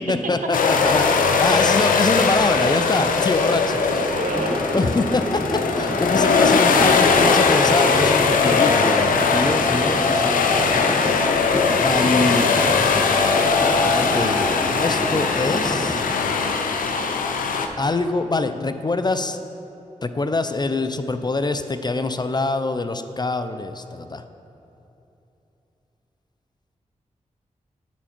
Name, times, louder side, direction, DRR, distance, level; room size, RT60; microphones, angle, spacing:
voice 1, 0.1-4.0 4.7-10.7 11.8-12.5 13.9-14.4 14.8-16.0 17.8-19.4 20.0-24.2, left 3 dB, 30° left, 10 dB, 0.5 m, -24 dB
sound 1, 0.5-17.7, left 4 dB, 90° left, 0.5 m, -20 dB
voice 2, 3.7-4.6 6.5-6.6 12.0-12.2, right 2 dB, 80° right, 1 dB, 1.2 m, -30 dB
sound 2, 4.3-16.0, equal, 10° left, 0.9 m, -29 dB
8.3 x 7.2 x 4.4 m, 3.0 s
cardioid pair, 45°, 14 cm